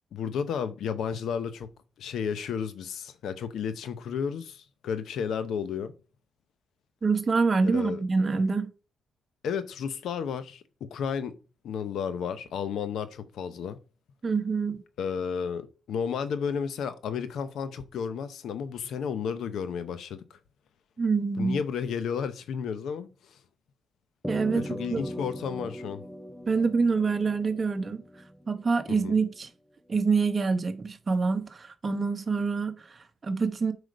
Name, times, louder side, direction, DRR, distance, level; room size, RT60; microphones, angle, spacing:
voice 1, 0.1-1.7 2.0-5.9 7.7-8.0 9.4-10.6 10.9-11.3 11.6-13.8 15.0-20.2 21.4-23.1 24.5-26.0 28.9-29.2, left 7 dB, 80° left, 0.8 m, -32 dB
voice 2, 7.0-8.7 14.2-14.8 21.0-21.6 24.3-25.0 26.5-28.0 28.5-29.5 29.9-33.7, right 4 dB, 35° right, 1.1 m, -26 dB
sound 1, 24.2-28.9, equal, 5° left, 0.7 m, -39 dB
7.9 x 5.0 x 5.0 m
cardioid pair, 110°, 0 cm